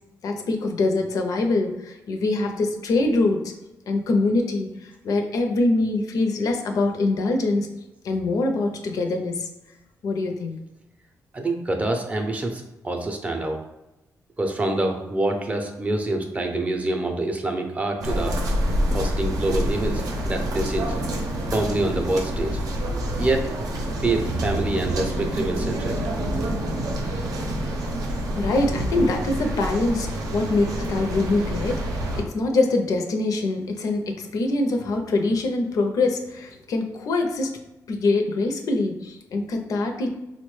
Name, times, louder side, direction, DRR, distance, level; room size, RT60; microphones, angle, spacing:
voice 1, 0.2-3.5 3.9-4.7 5.0-7.7 8.0-9.5 10.0-10.6 28.4-31.8 32.2-37.6 37.9-40.1, left 2 dB, 75° left, 4 dB, 0.5 m, -24 dB
voice 2, 11.3-13.6 14.4-18.4 18.9-20.9 21.5-23.5 24.0-26.0 28.0-28.3, right 2 dB, 20° right, 3 dB, 0.5 m, -26 dB
sound 1, 18.0-32.2, right 1 dB, 80° right, 0.6 m, -27 dB
3.9 x 2.1 x 3.1 m, 0.96 s
cardioid pair, 115°, 6 cm